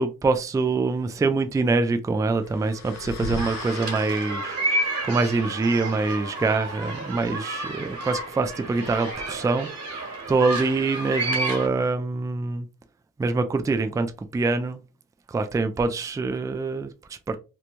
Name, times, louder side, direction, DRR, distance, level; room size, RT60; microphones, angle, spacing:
voice 1, 0.0-9.7 10.3-12.7 13.2-14.8 15.3-17.4, right 3 dB, 10° right, 0.3 m, -25 dB
sound 1, 2.3-4.8 8.6-9.1, left 2 dB, 60° left, 0.8 m, -37 dB
sound 2, 3.4-11.7, right 1 dB, 60° right, 1.4 m, -31 dB
3.0 x 2.1 x 2.5 m
cardioid pair, 90°, 30 cm